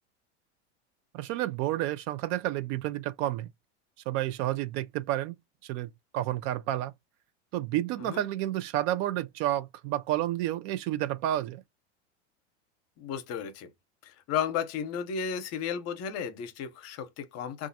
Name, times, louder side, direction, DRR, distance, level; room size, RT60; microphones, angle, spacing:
voice 1, 1.1-3.5 4.1-5.3 5.6-6.9 7.5-11.6, right 14 dB, 55° right, 0.5 m, -30 dB
voice 2, 13.0-13.7 14.0-17.7, left 7 dB, 45° left, 0.8 m, -34 dB
4.8 x 2.4 x 2.6 m
supercardioid pair, 115°, 35 cm